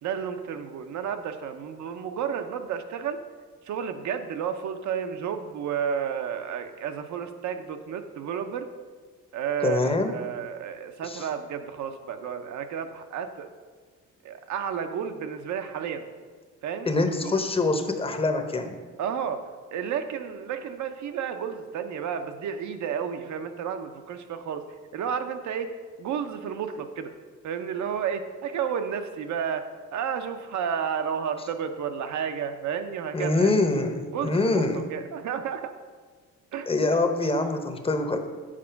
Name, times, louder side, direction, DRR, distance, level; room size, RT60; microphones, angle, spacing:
voice 1, 0.0-3.2 3.6-8.7 9.3-13.5 14.2-16.1 16.6-16.9 17.2-17.3 19.0-19.4 19.7-24.6 24.9-27.1 27.4-33.5 34.1-35.7 36.5-36.7, right 7 dB, 70° right, 8 dB, 0.7 m, -31 dB
voice 2, 9.6-10.1 11.0-11.3 16.9-18.8 33.1-34.8 36.7-38.2, left 2 dB, 20° left, 6 dB, 0.8 m, -25 dB
7.5 x 4.2 x 5.7 m, 1.5 s
cardioid pair, 90°, 30 cm